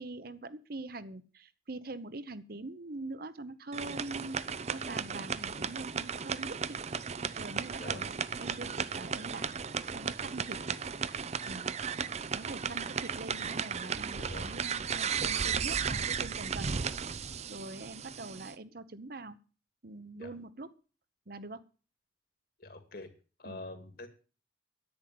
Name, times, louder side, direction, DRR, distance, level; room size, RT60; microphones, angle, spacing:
voice 1, 0.0-6.8 7.4-9.6 9.9-10.6 11.5-11.7 12.3-16.7 17.5-19.4 19.8-20.7 21.3-21.6 23.4-23.6, right 2 dB, 50° right, 13 dB, 0.9 m, -43 dB
sound 1, 3.7-18.5, right 6 dB, 35° right, 0.6 m, -35 dB
voice 2, 22.6-23.1 23.4-24.1, left 2 dB, 55° left, 8 dB, 2.3 m, -45 dB
10.5 x 9.0 x 7.7 m, 0.36 s
head